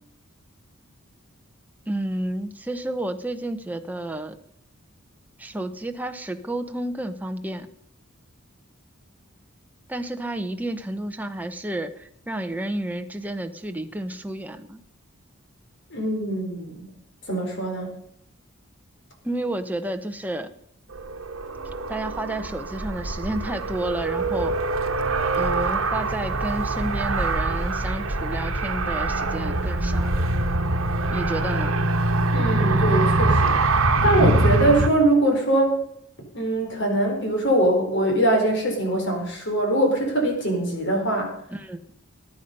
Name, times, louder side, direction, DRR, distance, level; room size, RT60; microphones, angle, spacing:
voice 1, 1.9-4.4 5.4-7.7 9.9-14.8 19.2-20.5 21.9-24.5 25.3-30.2 31.1-31.7 41.5-41.8, right 1 dB, 10° right, 6 dB, 0.8 m, -31 dB
voice 2, 15.9-16.9 17.3-17.9 32.3-35.8 36.3-41.3, right 1 dB, 55° left, 2 dB, 4.4 m, -22 dB
Car, 20.9-34.9, right 2 dB, 70° right, 1.2 m, -24 dB
20.0 x 9.5 x 5.3 m, 0.72 s
head